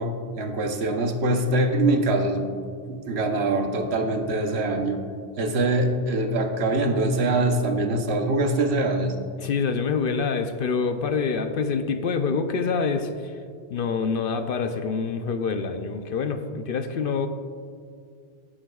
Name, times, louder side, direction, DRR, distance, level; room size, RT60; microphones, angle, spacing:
voice 1, 0.0-2.6 2.9-5.0 5.4-9.1, right 2 dB, 75° right, 4 dB, 1.1 m, -23 dB
voice 2, 9.4-13.3 13.7-17.3, left 5 dB, 60° left, 8 dB, 0.7 m, -26 dB
17.5 x 7.6 x 2.3 m, 2.2 s
omnidirectional pair, 1.1 m